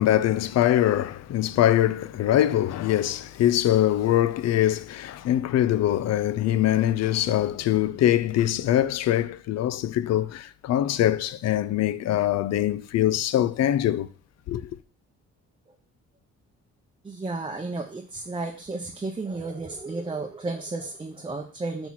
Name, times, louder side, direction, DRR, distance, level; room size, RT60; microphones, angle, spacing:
voice 1, 0.0-14.1 14.5-14.7, left 12 dB, 60° left, 0.5 m, -23 dB
voice 2, 17.0-21.9, right 3 dB, 15° right, 0.7 m, -33 dB
6.2 x 3.0 x 5.6 m
cardioid pair, 90°, 30 cm